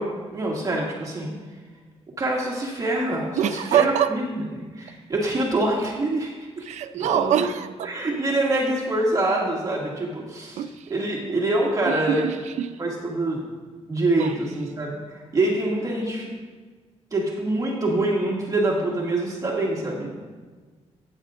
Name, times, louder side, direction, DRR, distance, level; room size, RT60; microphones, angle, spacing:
voice 1, 0.0-1.3 2.2-4.4 4.8-6.3 6.6-6.7 7.0-7.5 7.8-12.3 12.8-13.4 13.9-15.0 15.3-16.3 17.1-20.1, right 2 dB, 30° right, -3 dB, 2.2 m, -25 dB
voice 2, 3.4-4.1 6.7-7.9 10.6-10.7 11.9-12.7 14.2-14.3, right 9 dB, 85° right, 11 dB, 0.5 m, -24 dB
15.0 x 9.5 x 2.5 m, 1.4 s
cardioid pair, 135°, 12 cm